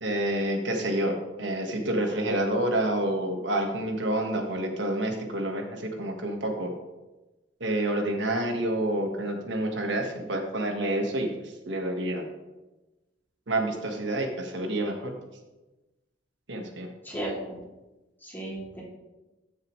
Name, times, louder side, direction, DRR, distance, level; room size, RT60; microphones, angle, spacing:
voice 1, 0.0-6.7 7.6-12.2 13.5-15.2 16.5-16.9, right 1 dB, 75° right, 2 dB, 1.5 m, -28 dB
voice 2, 17.0-17.6 18.2-18.8, right 1 dB, 10° left, -5 dB, 2.6 m, -35 dB
14.5 x 6.7 x 3.1 m, 1.1 s
head